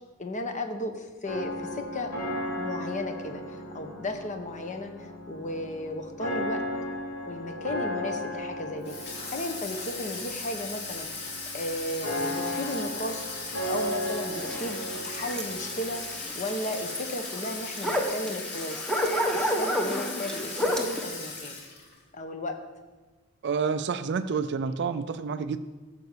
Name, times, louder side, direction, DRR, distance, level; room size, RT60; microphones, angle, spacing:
voice 1, 0.2-2.1 2.6-6.6 7.3-11.1 11.5-16.0 16.3-18.8 19.3-21.6 22.1-22.6, left 1 dB, 35° left, 6 dB, 1.1 m, -35 dB
sound 1, 1.2-16.2, left 1 dB, 90° left, 3.6 m, -36 dB
Water tap faucet / Sink (filling or washing), 8.8-22.0, left 3 dB, 50° left, 2.7 m, -38 dB
sound 2, 14.4-21.0, equal, 5° left, 1.1 m, -31 dB
voice 2, 23.4-25.6, right 5 dB, 55° right, 10 dB, 0.4 m, -29 dB
13.5 x 5.3 x 6.8 m, 1.3 s
head